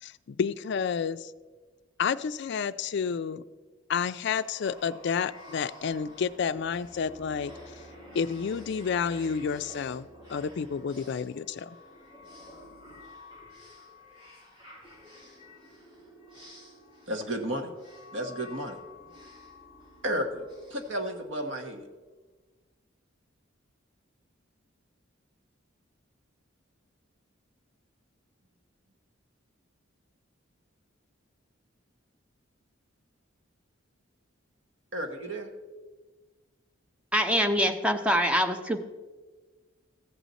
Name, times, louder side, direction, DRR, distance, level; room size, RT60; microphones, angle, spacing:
voice 1, 0.0-1.3 2.0-3.4 3.9-7.5 8.1-11.8, left 6 dB, 55° left, 14 dB, 0.3 m, -30 dB
sound 1, 4.1-21.8, left 1 dB, 25° right, 3.8 m, -50 dB
voice 2, 17.1-17.7 18.1-18.8 20.0-21.9 34.9-35.5, equal, 65° right, 4 dB, 1.3 m, -33 dB
voice 3, 37.1-38.8, equal, 5° right, 5 dB, 0.6 m, -24 dB
14.5 x 7.7 x 4.0 m, 1.3 s
head